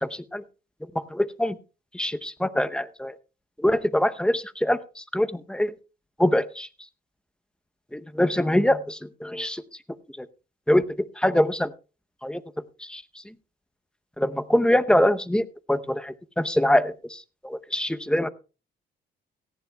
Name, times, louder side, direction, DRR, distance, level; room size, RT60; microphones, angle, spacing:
voice 1, 0.0-0.4 0.9-1.5 1.9-3.1 3.6-5.7 6.2-6.7 7.9-9.6 10.2-10.3 10.7-10.8 11.2-11.7 12.2-12.4 12.8-13.0 14.2-18.3, left 1 dB, 5° left, 11 dB, 0.8 m, -24 dB
17.5 x 15.0 x 2.3 m, 0.34 s
cardioid pair, 90°, 20 cm